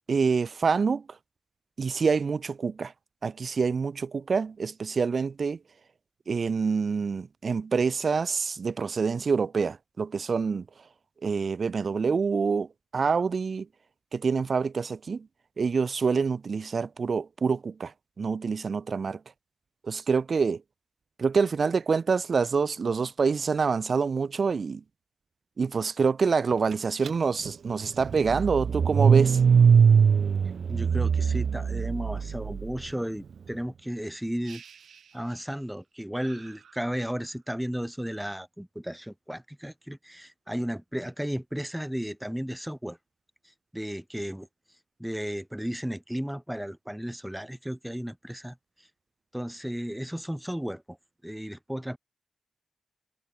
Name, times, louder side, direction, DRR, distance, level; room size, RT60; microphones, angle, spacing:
voice 1, 0.1-1.2 1.8-2.9 3.2-5.6 6.3-10.6 11.2-13.7 14.1-15.3 15.6-19.2 19.8-20.6 21.2-24.8 25.6-29.4, right 5 dB, 50° right, 1.4 m, -26 dB
Car / Engine starting, 27.0-27.1 27.5-32.7, right 6 dB, 65° right, 0.4 m, -22 dB
voice 2, 30.7-34.6 35.1-43.0 43.7-44.5 45.0-48.9 49.3-51.0 51.2-52.0, equal, 5° right, 1.8 m, -34 dB
sound 1, 34.4-35.8 36.2-37.5, right 7 dB, 85° right, 4.1 m, -53 dB
wide cardioid pair, 125°, 0 cm